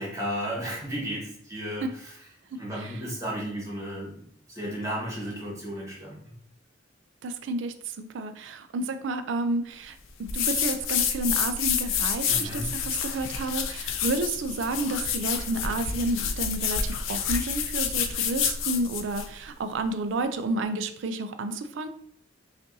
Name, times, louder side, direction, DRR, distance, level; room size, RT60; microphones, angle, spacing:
voice 1, 0.0-2.2 2.5-6.3 12.3-12.7, equal, 15° right, -4 dB, 1.3 m, -34 dB
voice 2, 7.2-10.0 10.3-21.9, right 2 dB, 70° right, 9 dB, 0.4 m, -30 dB
sound 1, 10.3-19.3, left 7 dB, 90° left, 0.4 m, -28 dB
5.2 x 2.5 x 2.7 m, 0.66 s
head